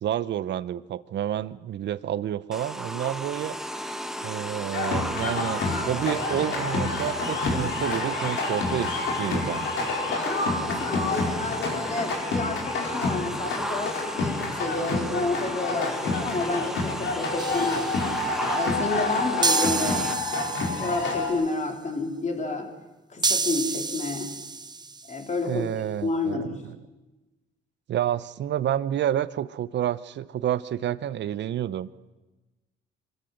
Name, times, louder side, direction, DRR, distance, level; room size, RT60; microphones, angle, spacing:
voice 1, 0.0-3.6 4.2-9.7 25.5-26.6 27.9-32.1, right 11 dB, 65° right, 17 dB, 0.7 m, -29 dB
sound 1, 2.5-20.2, equal, ahead, 1.4 m, -34 dB
sound 2, 4.7-21.3, left 3 dB, 70° left, 4.7 m, -29 dB
voice 2, 10.2-17.9 18.5-20.1 20.6-22.7 23.1-24.4 25.1-25.7 26.0-26.6, left 2 dB, 35° left, 2 dB, 3.8 m, -30 dB
sound 3, 17.4-18.3 19.4-21.3 23.2-25.1, right 4 dB, 20° right, 0.6 m, -29 dB
25.0 x 13.5 x 7.9 m, 1.2 s
cardioid pair, 90°, 20 cm